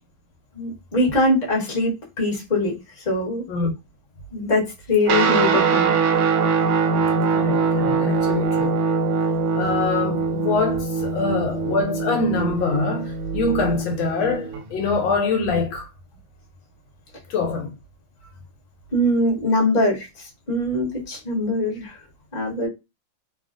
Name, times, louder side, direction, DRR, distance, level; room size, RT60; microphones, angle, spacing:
voice 1, 0.5-3.4 4.3-5.9 18.9-22.0 22.3-22.7, left 1 dB, 30° left, 1.1 m, -22 dB
Guitar, 5.1-14.7, right 5 dB, 80° right, 1.4 m, -22 dB
voice 2, 7.3-8.8 9.5-15.9 17.3-17.7, left 3 dB, 75° left, 1.4 m, -24 dB
3.2 x 2.4 x 2.4 m
omnidirectional pair, 2.2 m